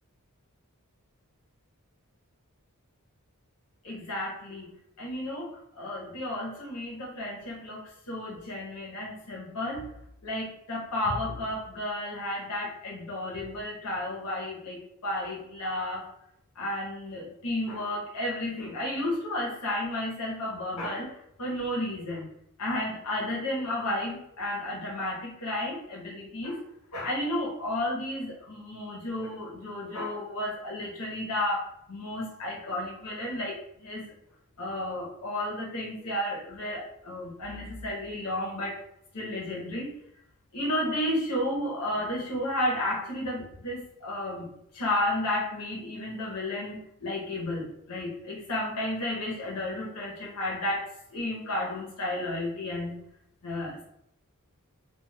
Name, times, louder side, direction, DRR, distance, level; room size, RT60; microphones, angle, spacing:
voice 1, 3.8-9.9 10.2-16.1 16.6-22.3 22.6-26.6 26.9-34.1 34.6-38.8 39.1-39.9 40.5-44.5 44.7-52.9 53.4-53.8, left 1 dB, 90° left, -3 dB, 0.8 m, -32 dB
2.3 x 2.3 x 3.2 m, 0.75 s
head